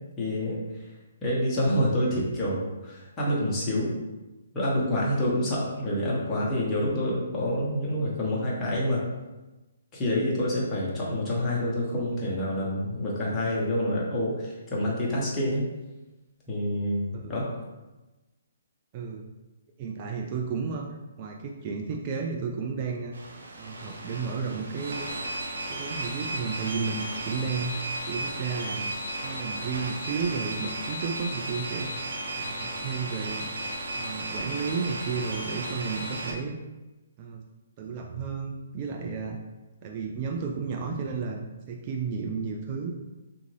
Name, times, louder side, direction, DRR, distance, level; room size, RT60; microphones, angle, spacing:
voice 1, 0.2-0.6 1.2-3.9 4.5-9.0 9.9-15.6 16.5-17.5, left 1 dB, 20° left, -6 dB, 1.0 m, -27 dB
voice 2, 18.9-19.3 19.8-23.2 23.6-25.1 25.7-27.7 28.1-29.0 29.2-32.1 32.3-33.5 33.9-36.5 37.2-37.4 37.8-39.4 39.8-42.9, right 5 dB, 35° right, 1 dB, 0.3 m, -33 dB
sound 1, 23.1-36.3, right 1 dB, 70° right, 0.7 m, -35 dB
3.4 x 2.5 x 3.2 m, 1.1 s
hypercardioid pair, 150°, 0 cm